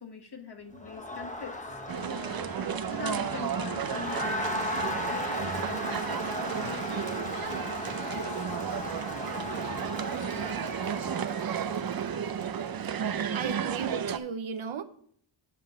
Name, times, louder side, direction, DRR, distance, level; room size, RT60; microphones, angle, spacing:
voice 1, 0.0-8.1, left 4 dB, 50° left, 5 dB, 1.3 m, -44 dB
Crowd, 0.7-13.3, left 1 dB, 15° left, 1.0 m, -37 dB
sound 1, 1.7-5.9 6.6-10.8, right 1 dB, 10° right, 1.7 m, -50 dB
sound 2, 1.9-14.2, right 8 dB, 50° right, 0.5 m, -33 dB
voice 2, 12.9-14.8, right 6 dB, 70° right, 11 dB, 0.8 m, -36 dB
7.6 x 5.3 x 5.8 m, 0.62 s
wide cardioid pair, 75°, 49 cm